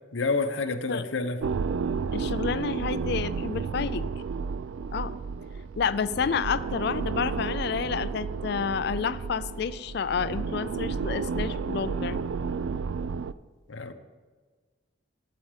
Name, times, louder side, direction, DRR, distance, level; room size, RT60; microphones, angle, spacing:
voice 1, 0.1-1.4 13.7-13.9, left 3 dB, 80° left, 7 dB, 0.8 m, -28 dB
sound 1, 1.4-13.3, right 5 dB, 90° right, 0.4 m, -32 dB
voice 2, 2.1-4.1 4.9-5.2 5.8-12.2, left 6 dB, 55° left, 14 dB, 0.4 m, -30 dB
8.8 x 8.5 x 5.0 m, 1.4 s
head